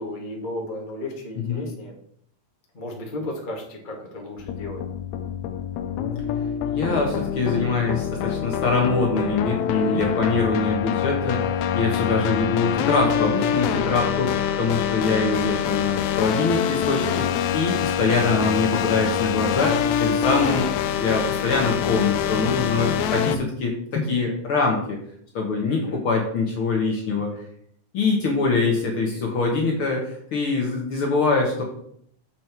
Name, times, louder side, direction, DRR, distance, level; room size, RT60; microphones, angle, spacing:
voice 1, 0.0-2.0 2.7-4.8 9.7-10.0 25.7-26.0, left 1 dB, 25° left, -1 dB, 1.1 m, -34 dB
sound 1, 4.4-23.4, left 9 dB, 80° left, 1.7 m, -25 dB
voice 2, 6.7-20.7 20.9-25.0 25.3-27.3 27.9-31.6, left 3 dB, 50° left, 0 dB, 1.8 m, -24 dB
7.4 x 6.3 x 4.6 m, 0.67 s
omnidirectional pair, 3.7 m